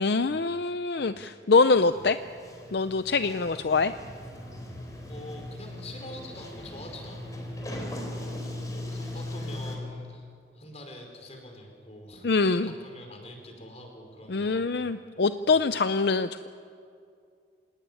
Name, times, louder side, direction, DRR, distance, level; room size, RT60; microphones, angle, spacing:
voice 1, 0.0-2.2 2.7-3.9 12.2-12.7 14.3-16.5, left 4 dB, 65° left, 11 dB, 0.6 m, -24 dB
Sliding door, 1.9-9.8, left 1 dB, 20° left, 4.0 m, -39 dB
voice 2, 3.4-3.8 5.1-8.1 8.7-10.3 10.5-14.9, left 1 dB, 35° left, 2 dB, 5.1 m, -45 dB
27.0 x 19.0 x 9.7 m, 2.4 s
head